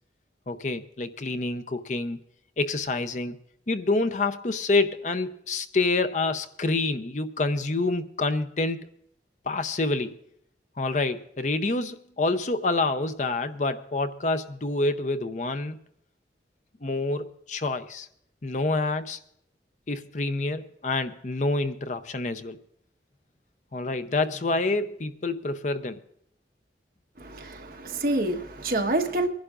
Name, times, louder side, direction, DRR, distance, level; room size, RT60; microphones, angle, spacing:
voice 1, 0.5-2.2 2.6-3.4 3.7-8.9 9.4-10.2 10.8-15.8 16.8-18.1 18.4-19.2 19.9-22.6 23.7-26.0, left 3 dB, 45° left, 0.6 m, -27 dB
voice 2, 27.2-29.3, right 2 dB, 55° right, 1.3 m, -27 dB
24.5 x 11.5 x 2.5 m
head